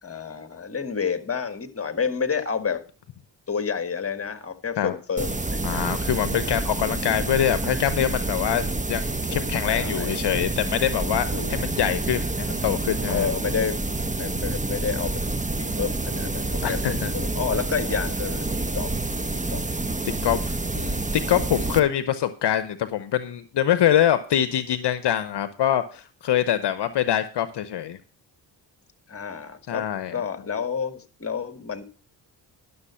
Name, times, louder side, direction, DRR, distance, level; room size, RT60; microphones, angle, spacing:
voice 1, 0.0-2.8 3.5-5.8 9.7-10.2 11.3-11.6 13.1-13.8 14.1-15.2 15.5-18.9 19.3-19.6 29.1-29.8 30.1-31.8, left 6 dB, 30° left, 10 dB, 1.6 m, -29 dB
sound 1, 5.2-21.8, right 2 dB, 15° right, 1.1 m, -28 dB
voice 2, 5.6-13.3 16.6-17.1 20.2-28.0 29.7-30.1, left 10 dB, 60° left, 12 dB, 0.9 m, -24 dB
11.5 x 7.0 x 5.6 m, 0.38 s
supercardioid pair, 50°, 45 cm